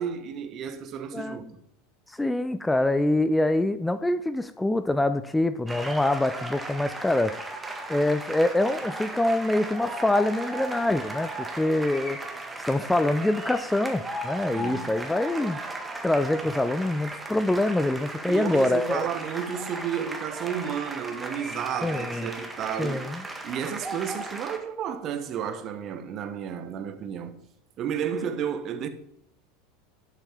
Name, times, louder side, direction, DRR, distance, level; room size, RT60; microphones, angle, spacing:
voice 1, 0.0-1.5 14.5-14.9 18.3-23.1 23.4-27.3 27.8-28.9, right 8 dB, 40° right, 1.2 m, -32 dB
voice 2, 1.1-1.5 2.1-7.3 7.9-12.2 12.7-15.6 16.0-19.1 21.8-22.3 22.8-23.2, left 1 dB, 5° left, 0.5 m, -25 dB
sound 1, 5.7-24.6, right 2 dB, 10° right, 1.7 m, -36 dB
11.5 x 8.8 x 3.6 m
figure-of-eight pair, 80°, 0 cm